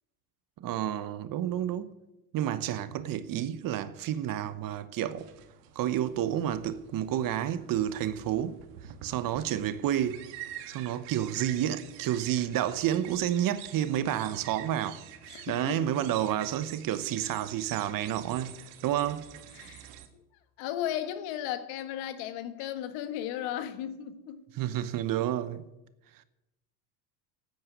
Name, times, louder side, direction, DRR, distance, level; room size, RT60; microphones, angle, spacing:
voice 1, 0.6-1.9 2.3-5.3 5.7-10.2 10.7-15.0 15.5-19.3 24.5-25.7, right 11 dB, 45° right, 1.0 m, -30 dB
sound 1, 5.2-20.1, right 12 dB, 70° right, 1.6 m, -47 dB
voice 2, 15.3-15.8 19.5-20.2 20.6-24.4, left 11 dB, 65° left, 1.6 m, -35 dB
9.4 x 9.0 x 9.7 m
supercardioid pair, 100°, 46 cm